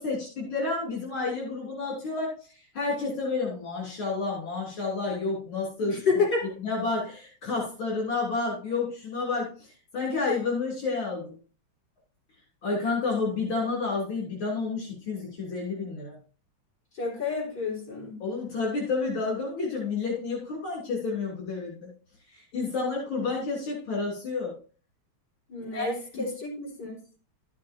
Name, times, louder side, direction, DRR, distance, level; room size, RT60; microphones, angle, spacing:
voice 1, 0.0-6.2 6.6-9.7 9.9-11.3 12.6-16.2 18.2-21.9 22.3-24.6 25.7-25.9 26.1-26.3, left 3 dB, 75° left, -4 dB, 3.9 m, -30 dB
voice 2, 5.8-6.5 17.0-18.2 25.5-27.0, left 4 dB, 55° left, -3 dB, 4.6 m, -29 dB
13.5 x 7.5 x 2.8 m, 0.38 s
omnidirectional pair, 2.2 m